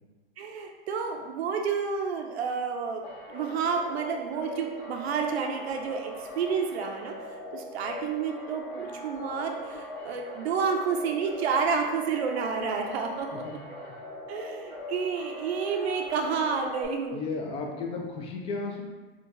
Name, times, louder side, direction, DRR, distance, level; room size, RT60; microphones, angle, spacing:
voice 1, 0.4-3.0 3.3-7.1 7.5-13.4 14.3-17.2, right 5 dB, 85° right, 3 dB, 0.5 m, -30 dB
sound 1, 3.0-16.9, equal, 60° left, 1.2 m, -40 dB
voice 2, 17.1-18.8, left 4 dB, 20° left, 1 dB, 0.3 m, -34 dB
3.8 x 2.3 x 2.5 m, 1.2 s
hypercardioid pair, 125°, 31 cm